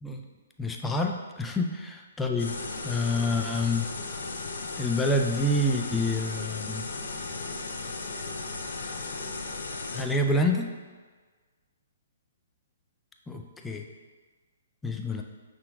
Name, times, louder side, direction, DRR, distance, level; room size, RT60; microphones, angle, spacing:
voice 1, 0.6-2.5 2.8-3.9 4.8-6.9 9.9-10.7 13.3-13.8 14.8-15.2, left 1 dB, 10° left, 2 dB, 0.4 m, -27 dB
sound 1, 2.4-10.0, left 3 dB, 75° left, 0.6 m, -36 dB
5.7 x 3.8 x 2.3 m, 1.4 s
hypercardioid pair, 145°, 0 cm